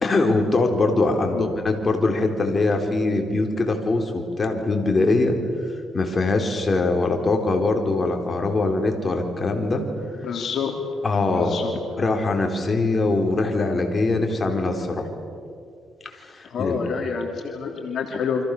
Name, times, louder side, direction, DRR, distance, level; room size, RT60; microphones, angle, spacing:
voice 1, 0.0-5.4 5.9-9.9 11.0-11.6 11.9-15.1 16.0-16.8, left 3 dB, 30° left, 3 dB, 4.2 m, -22 dB
voice 2, 10.2-10.7 11.3-11.7 16.5-18.4, left 6 dB, 60° left, 2 dB, 3.0 m, -28 dB
29.0 x 25.5 x 6.8 m, 2.3 s
cardioid pair, 90°, 0 cm